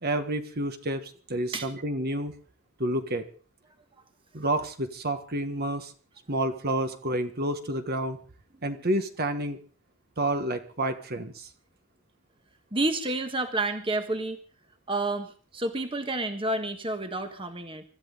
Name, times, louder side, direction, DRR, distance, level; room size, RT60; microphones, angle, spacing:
voice 1, 0.0-2.3 2.8-3.3 4.3-5.9 6.3-8.2 8.6-9.6 10.2-11.5, right 1 dB, 45° right, 7 dB, 1.5 m, -29 dB
voice 2, 12.7-14.4 14.9-17.8, right 2 dB, 25° right, 7 dB, 1.5 m, -29 dB
25.5 x 13.5 x 3.9 m, 0.41 s
head